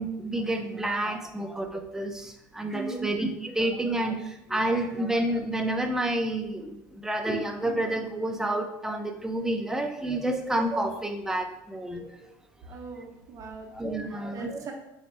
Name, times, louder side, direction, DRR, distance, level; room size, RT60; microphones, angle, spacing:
voice 1, 0.0-12.1 13.7-14.7, right 1 dB, 5° right, 5 dB, 0.4 m, -29 dB
voice 2, 2.7-3.1 12.6-13.7 14.1-14.7, right 4 dB, 35° right, 0 dB, 0.8 m, -39 dB
4.1 x 2.7 x 3.3 m, 0.85 s
supercardioid pair, 115°, 9 cm